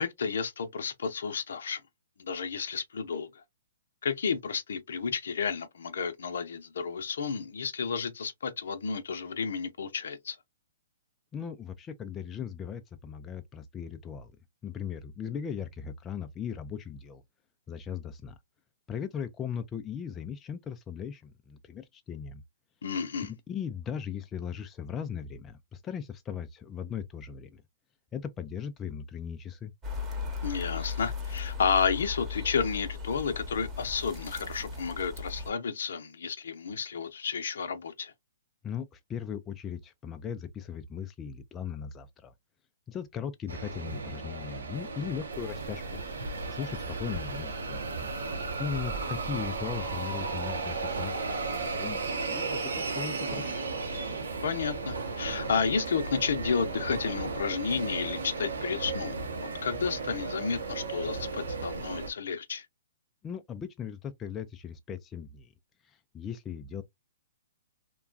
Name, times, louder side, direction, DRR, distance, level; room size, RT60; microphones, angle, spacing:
voice 1, 0.0-1.8 2.2-3.4 4.0-10.4 22.8-23.3 30.4-38.1 54.4-62.7, left 6 dB, 70° left, 0.6 m, -31 dB
voice 2, 11.3-14.3 14.6-17.2 17.7-18.4 18.9-22.4 23.2-27.6 28.1-29.7 38.6-42.3 42.9-47.8 48.6-53.6 63.2-65.5 65.8-66.8, left 7 dB, 20° left, 0.4 m, -38 dB
sound 1, 29.8-35.5, left 5 dB, 20° right, 1.0 m, -37 dB
sound 2, 43.5-62.1, right 3 dB, 85° right, 0.9 m, -35 dB
sound 3, 45.3-52.1, right 3 dB, 45° right, 0.5 m, -44 dB
2.9 x 2.3 x 2.4 m
hypercardioid pair, 135°, 0 cm